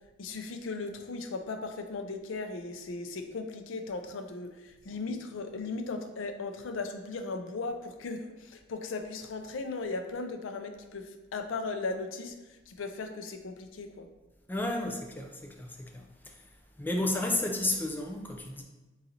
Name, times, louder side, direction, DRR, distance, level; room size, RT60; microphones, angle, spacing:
voice 1, 0.2-14.1, left 3 dB, 80° left, 7 dB, 0.5 m, -37 dB
voice 2, 14.5-16.4 16.8-18.6, left 1 dB, 10° left, 1 dB, 0.4 m, -32 dB
4.0 x 3.8 x 2.8 m, 1.1 s
head